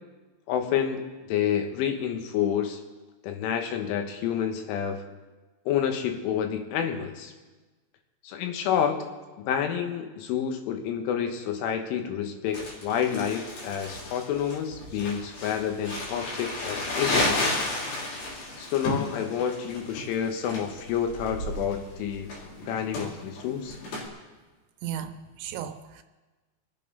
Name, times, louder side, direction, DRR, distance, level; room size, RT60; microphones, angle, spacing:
voice 1, 0.5-1.0 1.3-2.8 3.2-5.0 5.7-7.3 8.2-9.1 9.5-17.6 18.6-22.3 22.7-23.8, left 8 dB, 80° left, 5 dB, 3.7 m, -29 dB
Crumpling crinkling, 12.5-24.1, left 2 dB, 55° left, 4.6 m, -33 dB
voice 2, 24.8-26.0, right 10 dB, 80° right, 8 dB, 2.9 m, -35 dB
25.5 x 8.5 x 5.5 m, 1.3 s
omnidirectional pair, 5.6 m